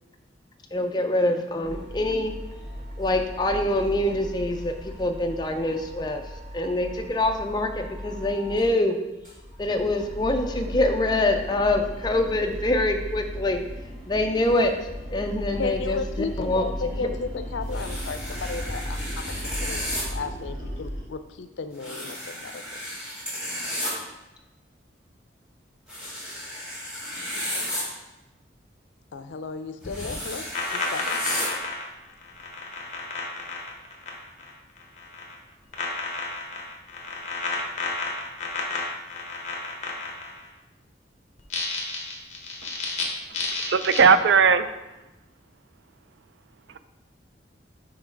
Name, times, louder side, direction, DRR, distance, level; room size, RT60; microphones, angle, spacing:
voice 1, 0.7-2.4 3.0-9.0 9.6-13.6 14.1-14.7 15.1-16.0 16.4-16.7 17.0-17.2, left 1 dB, 25° left, 0.4 m, -25 dB
sound 1, 1.6-8.7 9.0-21.0, equal, 45° right, 1.7 m, -36 dB
voice 2, 15.6-22.7 29.1-31.2, left 4 dB, 80° left, 0.5 m, -34 dB
sound 2, 17.7-20.0 21.8-23.9 25.9-27.8 29.8-31.5, left 1 dB, 5° right, 1.4 m, -33 dB
sound 3, 29.8-34.5 34.8-35.4 35.7-40.5 41.4-43.0 43.3-44.0, left 3 dB, 40° left, 1.0 m, -31 dB
voice 3, 43.6-44.7, right 5 dB, 70° right, 0.3 m, -17 dB
5.9 x 3.3 x 5.1 m
head